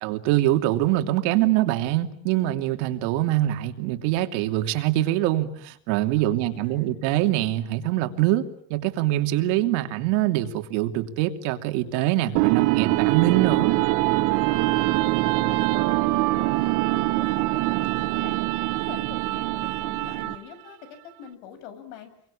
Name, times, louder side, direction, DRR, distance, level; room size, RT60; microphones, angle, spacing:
voice 1, 0.0-13.8, right 14 dB, 75° right, 6 dB, 2.9 m, -24 dB
voice 2, 6.2-6.9 14.4-15.1 15.4-18.4 18.7-22.1, left 8 dB, 90° left, 10 dB, 7.4 m, -45 dB
sound 1, 12.4-20.5, right 19 dB, 55° right, 1.4 m, -23 dB
28.0 x 23.5 x 8.7 m, 0.64 s
cardioid pair, 160°, 36 cm